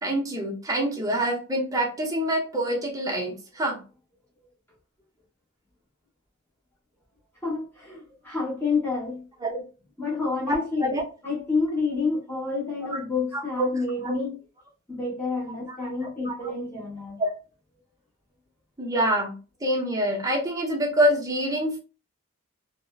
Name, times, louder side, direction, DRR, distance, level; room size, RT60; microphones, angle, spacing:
voice 1, 0.0-3.8 9.4-9.6 10.5-11.0 13.3-13.7 14.0-14.1 15.7-16.4 17.2-17.3 18.8-19.3 19.6-21.8, right 1 dB, 15° right, 0.6 m, -26 dB
voice 2, 7.4-9.2 10.0-11.0 11.2-14.4 14.9-17.2, left 4 dB, 10° left, 0.9 m, -29 dB
2.8 x 2.0 x 2.2 m
head